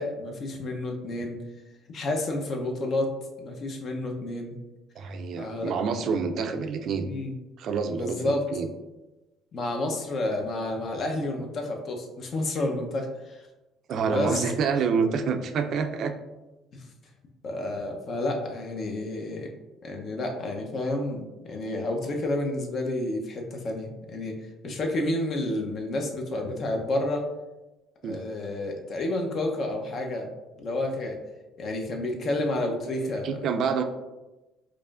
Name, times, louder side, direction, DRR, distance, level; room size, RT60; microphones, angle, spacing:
voice 1, 0.0-1.4 1.9-3.1 3.4-4.6 5.4-5.8 6.1-6.2 7.0-7.3 7.9-8.4 9.5-13.4 14.1-14.5 16.7-16.8 17.4-19.5 19.8-24.4 24.6-27.2 28.0-30.3 30.6-31.2 31.6-33.4, left 1 dB, 50° left, 2 dB, 0.7 m, -30 dB
voice 2, 5.0-7.1 7.6-8.7 13.9-16.1 24.6-24.8 28.0-28.2 33.2-33.8, right 5 dB, 55° right, 7 dB, 0.4 m, -27 dB
4.7 x 2.6 x 2.4 m, 1.1 s
cardioid pair, 115°, 0 cm